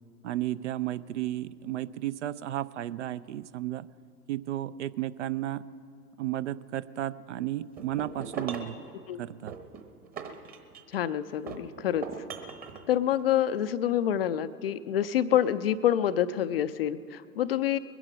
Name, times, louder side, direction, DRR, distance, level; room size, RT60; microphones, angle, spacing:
voice 1, 0.2-3.9 4.3-5.7 6.2-8.8 9.2-9.6, right 13 dB, 50° right, 17 dB, 0.5 m, -33 dB
sound 1, 7.8-8.8 9.5-11.0 11.5-12.8, right 6 dB, 20° right, 1.0 m, -39 dB
voice 2, 10.9-12.1 12.9-17.8, left 10 dB, 40° left, 13 dB, 0.4 m, -27 dB
20.5 x 11.0 x 6.0 m, 2.6 s
figure-of-eight pair, 110°, 48 cm